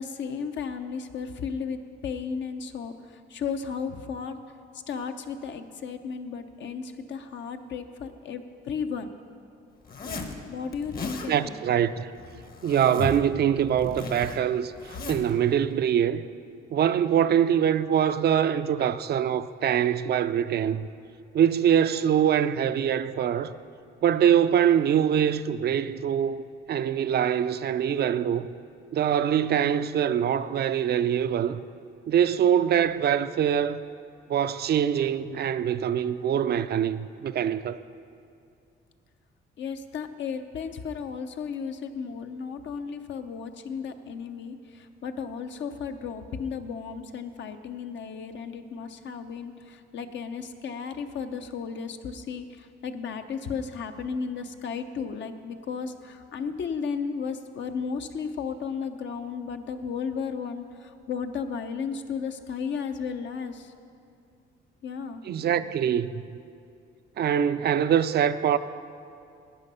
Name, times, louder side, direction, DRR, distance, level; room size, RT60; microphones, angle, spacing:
voice 1, 0.0-4.4 4.9-9.1 10.0-11.5 39.6-63.7 64.8-65.2, left 6 dB, 65° left, 0.8 m, -34 dB
Zipper (clothing), 9.8-10.4 10.7-11.3 12.1-13.3 13.6-15.3, left 3 dB, 50° left, 1.2 m, -37 dB
voice 2, 11.3-12.1 12.6-16.2 16.7-20.9 21.3-23.5 24.0-26.4 26.7-28.5 28.9-31.6 32.1-33.8 34.3-37.8 65.3-66.2 67.2-68.6, right 9 dB, 55° right, 0.4 m, -24 dB
12.0 x 9.1 x 5.6 m
cardioid pair, 90°, 20 cm